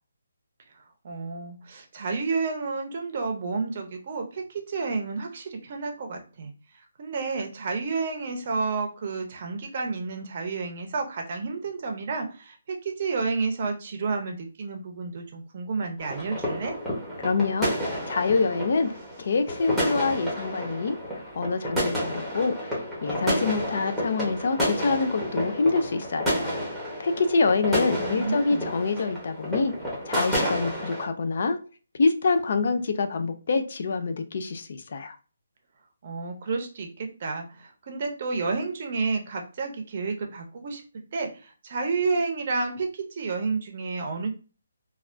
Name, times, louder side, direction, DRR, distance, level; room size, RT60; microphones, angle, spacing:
voice 1, 1.0-6.5 7.0-16.7 28.0-28.7 36.0-40.8 41.1-44.4, right 4 dB, 35° right, 0.6 m, -30 dB
sound 1, 16.0-31.0, equal, 5° left, 0.8 m, -30 dB
voice 2, 17.2-17.7 18.1-18.9 19.2-21.0 21.4-22.7 23.0-26.3 27.0-29.7 30.1-31.6 32.0-35.2, left 4 dB, 45° left, 0.4 m, -26 dB
3.3 x 2.3 x 2.5 m
hypercardioid pair, 170°, 0 cm